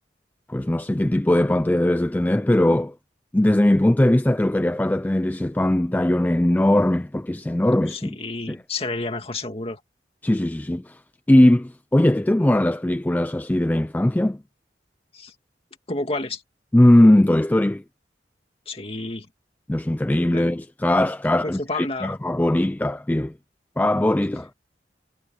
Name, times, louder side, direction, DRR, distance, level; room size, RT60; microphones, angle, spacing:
voice 1, 0.5-2.9 3.3-8.2 8.5-8.6 10.2-11.0 11.3-14.4 16.7-17.8 19.7-23.3 23.8-24.5, left 1 dB, 10° left, 0.3 m, -19 dB
voice 2, 7.9-9.8 15.1-15.3 15.9-16.4 18.7-19.3 20.3-20.5 21.4-22.2, left 2 dB, 35° left, 2.5 m, -30 dB
head